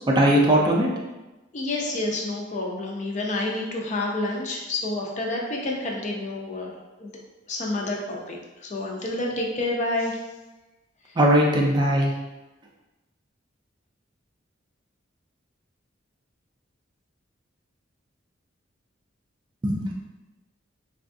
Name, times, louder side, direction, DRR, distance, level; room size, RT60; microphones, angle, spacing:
voice 1, 0.1-0.9 11.2-12.1 19.6-19.9, right 1 dB, 25° right, -1 dB, 0.4 m, -19 dB
voice 2, 1.5-6.7 7.0-7.1 7.5-10.2, left 2 dB, 40° left, -1 dB, 0.5 m, -29 dB
3.3 x 2.3 x 2.5 m, 1.1 s
head